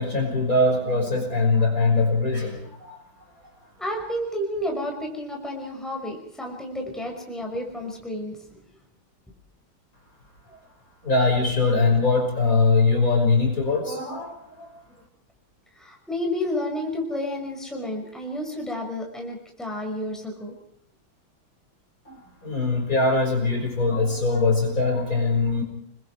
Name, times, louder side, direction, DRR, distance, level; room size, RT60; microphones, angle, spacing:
voice 1, 0.0-3.0 11.0-14.7 22.1-22.2 22.4-25.6, left 3 dB, 40° left, 1 dB, 6.3 m, -22 dB
voice 2, 3.8-8.4 15.8-20.6, left 1 dB, ahead, 1 dB, 5.4 m, -31 dB
30.0 x 22.0 x 4.8 m, 0.68 s
omnidirectional pair, 2.3 m